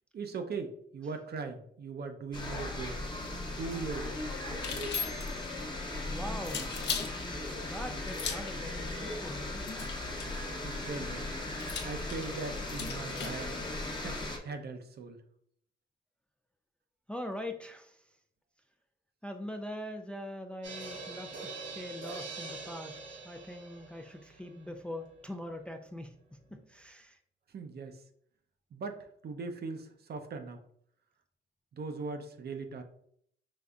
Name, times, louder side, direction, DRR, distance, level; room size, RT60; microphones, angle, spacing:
voice 1, 0.1-3.0 3.6-4.3 10.6-11.3 11.8-13.6 13.9-14.2 14.4-15.2 27.5-28.0 28.7-30.6 31.7-32.8, right 4 dB, 55° right, 6 dB, 0.6 m, -39 dB
sound 1, 2.3-14.4, left 2 dB, 25° left, 0.8 m, -37 dB
sound 2, 4.5-5.4 6.4-7.1 8.1-8.6 9.7-10.4 11.6-13.4, left 6 dB, 65° left, 0.7 m, -38 dB
voice 2, 6.1-6.7 7.6-9.6 17.1-18.0 19.2-27.2, left 1 dB, 5° left, 5 dB, 0.4 m, -42 dB
sound 3, 20.6-25.7 26.0-26.1 26.4-26.5, right 3 dB, 90° right, 1.1 m, -44 dB
5.2 x 3.3 x 2.4 m, 0.66 s
cardioid pair, 100°, 19 cm